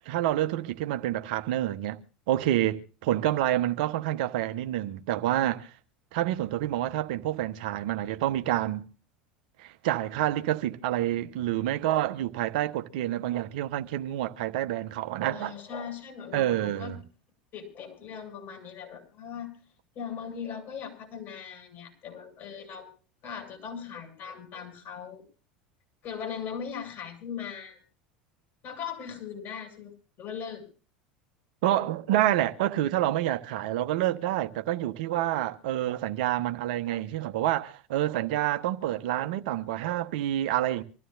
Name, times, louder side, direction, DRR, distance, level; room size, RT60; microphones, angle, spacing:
voice 1, 0.0-2.0 2.3-5.7 6.1-8.8 9.6-15.5 16.3-17.0 31.6-40.8, right 13 dB, 65° right, 1.0 m, -28 dB
voice 2, 15.3-17.0 17.5-19.6 20.0-22.9 23.2-25.2 26.0-27.8 28.6-29.9 30.2-30.6, left 7 dB, 50° left, 7.1 m, -39 dB
25.5 x 14.5 x 2.6 m
hypercardioid pair, 80°, 5 cm